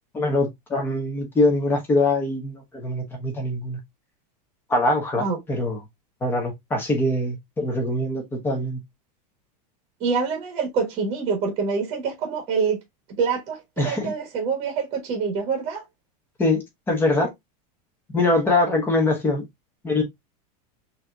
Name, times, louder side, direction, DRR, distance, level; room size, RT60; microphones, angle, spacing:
voice 1, 0.1-3.8 4.7-5.8 6.2-8.8 13.8-14.1 16.4-17.3 18.1-19.4 19.8-20.0, left 2 dB, 10° left, 1.0 m, -23 dB
voice 2, 10.0-12.8 13.2-15.8, right 5 dB, 30° right, 1.2 m, -26 dB
5.5 x 2.8 x 2.2 m
supercardioid pair, 175°, 21 cm